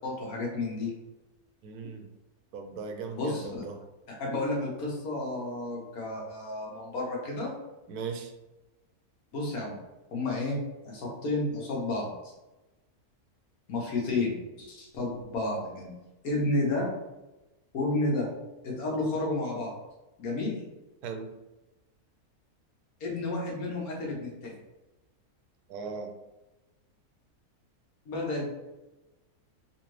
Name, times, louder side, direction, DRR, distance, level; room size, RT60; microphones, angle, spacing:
voice 1, 0.0-0.9 3.1-3.5 4.2-7.5 9.3-9.8 10.1-10.6 10.8-12.1 13.7-15.9 16.2-16.9 17.7-18.3 18.6-19.7 20.2-20.6 23.0-24.5 28.1-28.5, left 2 dB, 70° left, -3 dB, 1.5 m, -31 dB
voice 2, 1.6-2.1 2.5-3.8 7.9-8.3 21.0-21.4 25.7-26.2, right 5 dB, 85° right, 5 dB, 1.1 m, -38 dB
4.1 x 2.6 x 3.1 m, 1.0 s
omnidirectional pair, 1.6 m